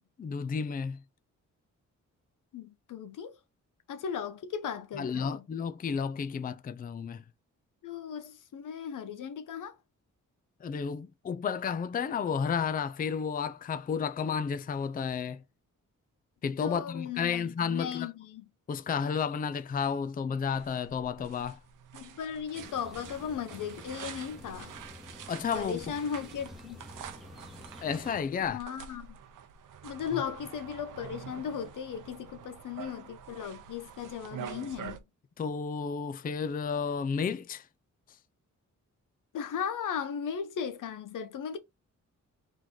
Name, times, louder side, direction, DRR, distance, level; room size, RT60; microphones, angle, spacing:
voice 1, 0.2-1.0 4.9-7.2 10.6-15.4 16.4-18.1 18.7-21.6 25.3-25.8 27.8-28.6 30.1-30.2 35.4-37.7 38.1-38.2, left 6 dB, 30° left, 0.4 m, -32 dB
voice 2, 2.5-3.4 3.9-5.4 7.8-9.8 16.6-18.4 21.9-24.7 25.5-26.8 28.5-29.2 29.8-35.0 39.3-41.6, left 7 dB, 85° left, 0.8 m, -37 dB
sound 1, 20.5-35.0, right 8 dB, 90° right, 0.7 m, -47 dB
sound 2, 22.5-28.2, left 1 dB, ahead, 1.2 m, -49 dB
3.8 x 3.2 x 3.7 m
cardioid pair, 95°, 31 cm